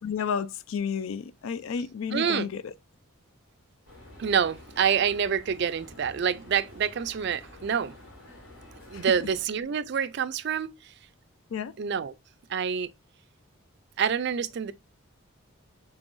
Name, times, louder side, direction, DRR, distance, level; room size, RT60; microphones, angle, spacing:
voice 1, 0.0-2.7 8.9-9.1 11.5-11.8, left 6 dB, 70° left, 0.4 m, -31 dB
voice 2, 2.1-2.5 4.2-8.0 8.9-10.9 11.8-12.1 12.5-12.9 14.0-14.7, right 7 dB, 50° right, 0.3 m, -27 dB
sound 1, 3.9-9.4, left 1 dB, 85° left, 2.7 m, -49 dB
5.3 x 3.4 x 2.5 m
head